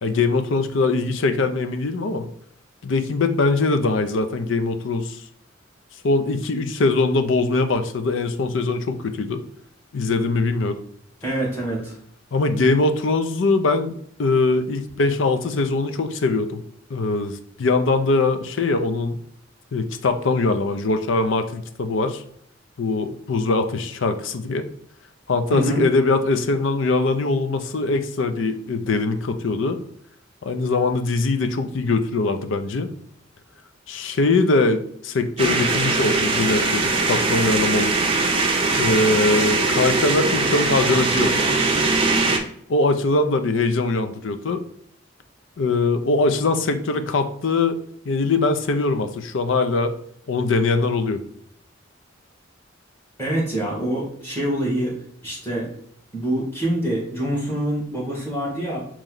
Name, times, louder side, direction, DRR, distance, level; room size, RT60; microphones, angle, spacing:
voice 1, 0.0-2.3 2.8-5.2 6.0-9.4 9.9-10.8 12.3-16.6 16.9-19.2 19.7-22.2 22.8-24.7 25.3-29.8 30.4-32.9 33.9-38.1 38.8-41.4 42.7-44.6 45.6-47.8 48.1-49.9 50.3-51.2, left 3 dB, 70° left, 9 dB, 0.5 m, -22 dB
voice 2, 11.2-11.9 25.5-25.8 53.2-55.7 56.1-58.8, right 1 dB, 10° left, -5 dB, 1.9 m, -25 dB
sound 1, 35.4-42.4, right 3 dB, 30° right, 0.6 m, -21 dB
4.3 x 3.1 x 3.8 m, 0.66 s
head